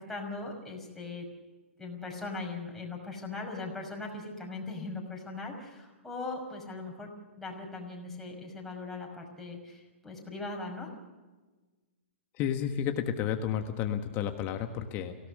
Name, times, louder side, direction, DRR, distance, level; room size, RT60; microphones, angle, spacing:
voice 1, 0.1-1.2 1.8-7.1 7.4-10.9, left 3 dB, 5° left, -1 dB, 5.6 m, -39 dB
voice 2, 12.4-15.2, left 9 dB, 30° left, 6 dB, 1.5 m, -31 dB
24.0 x 17.5 x 6.6 m, 1.2 s
hypercardioid pair, 140°, 7 cm